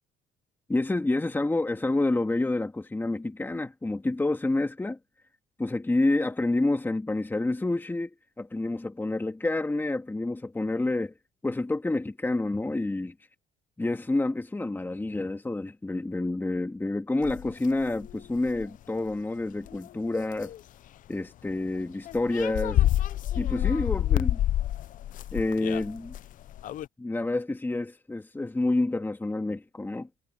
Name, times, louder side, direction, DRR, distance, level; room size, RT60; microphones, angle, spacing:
voice 1, 0.7-5.0 5.6-11.1 11.4-13.1 13.8-20.5 21.1-22.9 23.3-24.4 25.3-26.1 27.0-30.1, left 2 dB, 10° left, 1.8 m, -28 dB
sound 1, 17.2-18.7 19.1-19.2 19.7-19.9 20.3-20.6 21.8-21.9 22.1-26.9, left 13 dB, 50° left, 0.5 m, -28 dB
cardioid pair, 110°, 17 cm